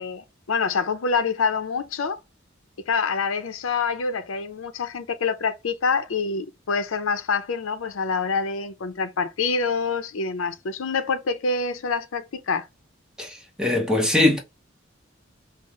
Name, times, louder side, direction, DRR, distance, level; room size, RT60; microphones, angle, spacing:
voice 1, 0.0-2.2 2.9-12.7, left 5 dB, 85° left, 0.5 m, -26 dB
voice 2, 13.2-14.4, left 2 dB, 5° right, 0.7 m, -21 dB
5.5 x 2.0 x 3.0 m
head